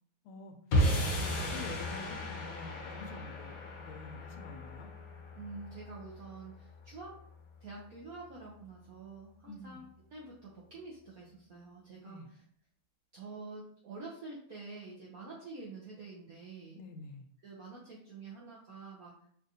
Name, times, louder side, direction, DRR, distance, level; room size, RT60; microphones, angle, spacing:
voice 1, 0.2-0.9 1.3-4.9 9.4-9.8 12.0-12.3 16.7-17.3, left 3 dB, 85° left, 5 dB, 1.5 m, -48 dB
sound 1, 0.7-7.1, equal, 65° left, 1.2 m, -34 dB
voice 2, 5.3-7.1 7.6-9.8 10.1-12.2 13.1-16.8 17.4-19.1, right 3 dB, 75° right, -4 dB, 0.8 m, -47 dB
5.0 x 2.4 x 2.7 m, 0.65 s
omnidirectional pair, 2.3 m